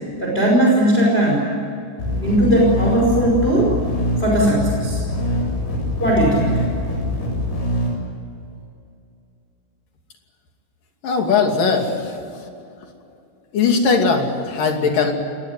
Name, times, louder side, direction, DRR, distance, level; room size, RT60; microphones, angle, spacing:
voice 1, 0.2-1.5 2.2-3.7 4.2-5.0 6.0-6.5, right 1 dB, 15° left, -2 dB, 5.1 m, -17 dB
sound 1, 2.0-7.9, left 1 dB, 85° left, 10.0 m, -24 dB
voice 2, 11.0-12.2 13.5-15.1, left 4 dB, 55° left, 3 dB, 4.2 m, -19 dB
26.0 x 20.5 x 9.5 m, 2.6 s
omnidirectional pair, 4.9 m